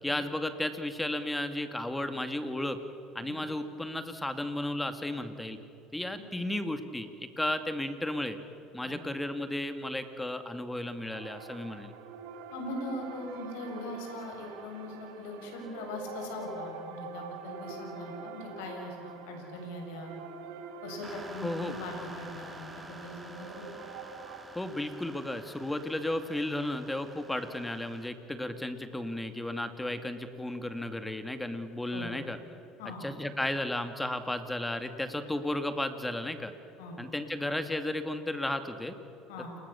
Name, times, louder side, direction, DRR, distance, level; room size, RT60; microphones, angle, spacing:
voice 1, 0.0-2.8 3.1-5.6 5.9-8.4 8.7-11.9 21.4-21.8 24.5-32.4 33.0-36.5 37.0-39.0, left 1 dB, 10° left, 8 dB, 2.4 m, -34 dB
sound 1, 11.1-24.4, right 5 dB, 80° right, 3.0 m, -45 dB
voice 2, 12.5-20.1 20.8-23.7 31.9-32.1 32.8-33.0 36.8-37.0 39.3-39.5, left 2 dB, 85° left, 2 dB, 7.1 m, -41 dB
sound 2, 21.0-28.1, right 2 dB, 10° right, 2.9 m, -49 dB
30.0 x 21.0 x 7.1 m, 2.9 s
supercardioid pair, 90°, 0 cm